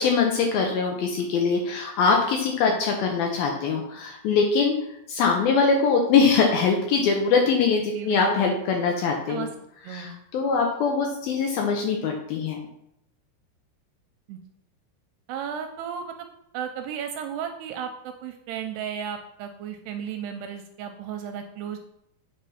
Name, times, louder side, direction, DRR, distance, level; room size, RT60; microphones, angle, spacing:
voice 1, 0.0-4.7 5.1-9.5 9.9-12.6, left 5 dB, 75° left, 2 dB, 2.3 m, -22 dB
voice 2, 7.9-8.5 9.3-9.5 9.8-10.2 14.3-14.4 15.3-16.1 16.5-21.8, right 8 dB, 80° right, 6 dB, 2.5 m, -34 dB
8.4 x 5.1 x 5.7 m, 0.79 s
omnidirectional pair, 5.1 m